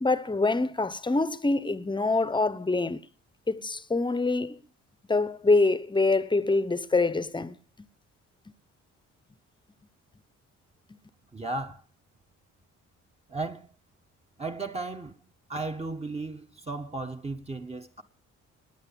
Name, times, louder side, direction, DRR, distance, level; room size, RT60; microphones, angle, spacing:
voice 1, 0.0-3.0 3.5-4.6 5.1-7.6 10.9-11.0, left 3 dB, 15° left, 1.0 m, -25 dB
voice 2, 11.3-11.8 13.3-13.7 14.4-15.2 15.5-18.0, right 3 dB, 20° right, 1.4 m, -35 dB
19.0 x 9.4 x 7.0 m
cardioid pair, 90°, 30 cm